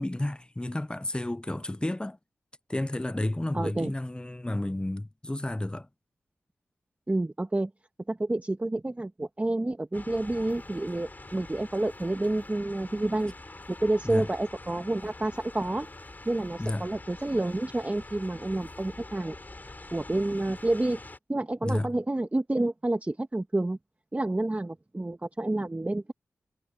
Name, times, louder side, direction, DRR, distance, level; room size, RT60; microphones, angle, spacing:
voice 1, 0.0-2.2 2.7-5.9 14.0-14.3 16.6-16.9 21.6-21.9, left 1 dB, 15° left, 0.9 m, -31 dB
voice 2, 3.5-3.9 7.1-7.7 8.1-13.3 13.7-15.9 16.3-19.4 19.9-21.0 21.3-23.8 24.1-26.1, right 2 dB, 25° right, 1.9 m, -29 dB
sound 1, 9.9-21.2, left 2 dB, 35° left, 4.8 m, -45 dB
cardioid pair, 45°, 5 cm